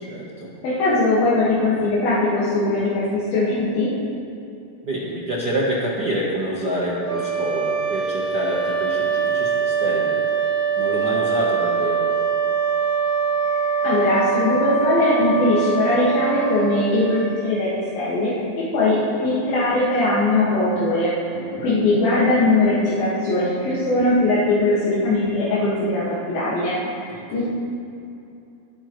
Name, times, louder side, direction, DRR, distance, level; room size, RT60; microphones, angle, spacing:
voice 1, 0.1-0.5 4.8-10.2 10.7-12.1 21.3-21.7 27.1-27.4, right 1 dB, 75° right, -5 dB, 0.9 m, -27 dB
voice 2, 0.6-4.0 13.5-18.3 18.6-21.1 21.6-26.8 27.3-27.5, left 2 dB, 80° left, -9 dB, 3.7 m, -20 dB
sound 1, 7.0-18.0, right 6 dB, 50° right, 1.8 m, -23 dB
25.0 x 9.0 x 3.2 m, 2.7 s
omnidirectional pair, 4.1 m